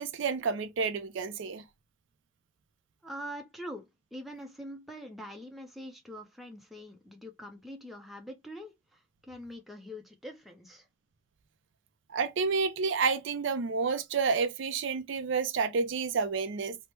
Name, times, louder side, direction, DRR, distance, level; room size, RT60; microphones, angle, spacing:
voice 1, 0.0-1.6 12.1-16.8, right 5 dB, 65° right, 0.4 m, -30 dB
voice 2, 3.0-10.9, equal, ahead, 0.5 m, -44 dB
3.0 x 2.0 x 3.2 m
head